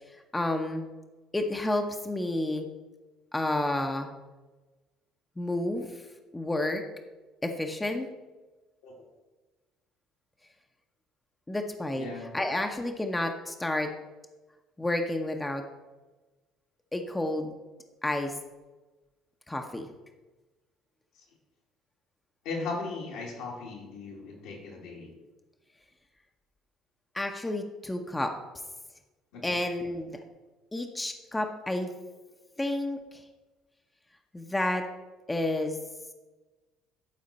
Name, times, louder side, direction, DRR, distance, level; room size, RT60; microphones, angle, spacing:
voice 1, 0.3-0.9 1.3-2.7 3.3-4.1 5.4-5.9 6.3-6.8 7.4-8.1 11.5-12.1 12.3-13.9 14.8-15.6 16.9-17.5 18.0-18.3 19.5-19.9 27.1-28.3 29.4-30.1 30.7-31.9 32.6-33.2 34.3-34.8 35.3-35.8, left 1 dB, 15° left, 4 dB, 0.9 m, -30 dB
voice 2, 12.0-12.3 22.4-25.1 29.3-29.6, left 3 dB, 75° left, -3 dB, 2.4 m, -37 dB
11.5 x 4.2 x 4.2 m, 1.2 s
hypercardioid pair, 70°, 0 cm